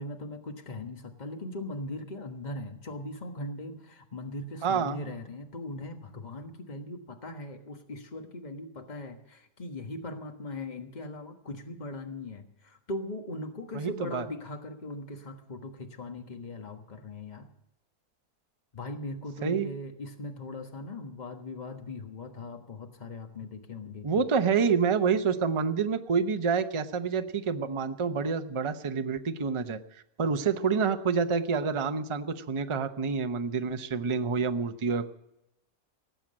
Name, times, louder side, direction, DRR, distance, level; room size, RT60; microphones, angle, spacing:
voice 1, 0.0-17.5 18.7-24.3, left 2 dB, 30° left, 5 dB, 1.4 m, -39 dB
voice 2, 4.6-5.0 13.7-14.2 19.4-19.7 24.0-35.1, right 5 dB, 30° right, 9 dB, 0.5 m, -28 dB
18.5 x 7.6 x 8.7 m, 0.84 s
omnidirectional pair, 1.6 m